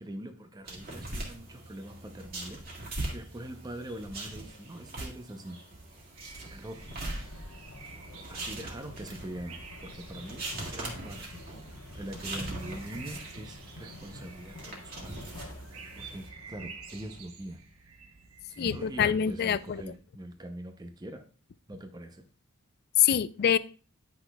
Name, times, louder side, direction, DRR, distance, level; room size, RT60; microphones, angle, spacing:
voice 1, 0.0-5.6 6.5-6.9 8.3-10.5 10.7-15.2 16.0-17.6 18.5-21.2 21.7-22.2, right 1 dB, 20° right, 6 dB, 0.6 m, -43 dB
sound 1, 0.7-16.3, right 2 dB, 45° right, 1.9 m, -42 dB
sound 2, 6.1-20.0, right 3 dB, 85° right, 1.2 m, -48 dB
sound 3, 6.8-17.2, left 2 dB, 80° left, 1.1 m, -49 dB
voice 2, 18.6-19.6 23.0-23.6, left 9 dB, 50° left, 17 dB, 0.3 m, -24 dB
10.5 x 5.9 x 2.2 m, 0.39 s
head